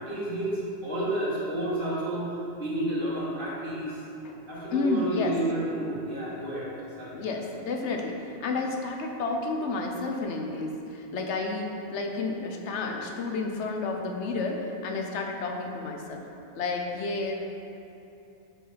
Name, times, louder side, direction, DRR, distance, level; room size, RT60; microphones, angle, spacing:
voice 1, 0.0-4.0 4.5-7.2, right 1 dB, 50° right, -7 dB, 1.8 m, -31 dB
voice 2, 4.7-5.3 7.1-16.2 16.5-17.3, left 3 dB, 85° left, 2 dB, 1.1 m, -31 dB
5.7 x 4.7 x 5.7 m, 2.9 s
omnidirectional pair, 1.1 m